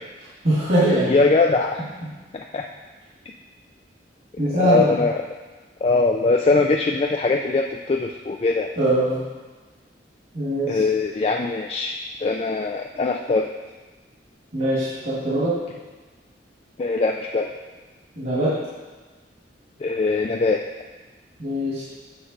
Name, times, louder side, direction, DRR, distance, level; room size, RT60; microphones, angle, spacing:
voice 1, 0.4-1.2 4.4-5.0 8.8-9.3 10.3-10.8 14.5-15.6 18.2-18.6 21.4-21.8, right 1 dB, 50° right, -8 dB, 1.9 m, -22 dB
voice 2, 1.1-1.9 2.5-2.7 4.5-5.2 5.8-8.7 10.7-13.5 16.8-17.5 19.8-20.6, left 3 dB, 35° left, 2 dB, 0.3 m, -21 dB
7.8 x 6.3 x 4.0 m, 1.3 s
head